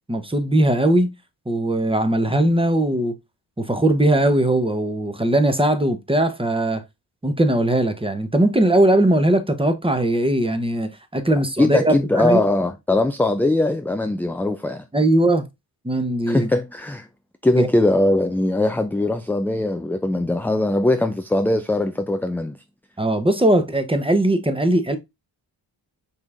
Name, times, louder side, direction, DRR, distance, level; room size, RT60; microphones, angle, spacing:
voice 1, 0.1-1.1 1.5-3.2 3.6-6.8 7.2-12.4 14.9-15.5 15.8-16.5 17.5-17.7 23.0-25.0, right 1 dB, 10° right, 0.9 m, -19 dB
voice 2, 11.6-14.8 16.3-17.1 17.4-22.6, left 2 dB, 5° left, 0.3 m, -21 dB
5.5 x 3.2 x 2.5 m
cardioid pair, 45°, 49 cm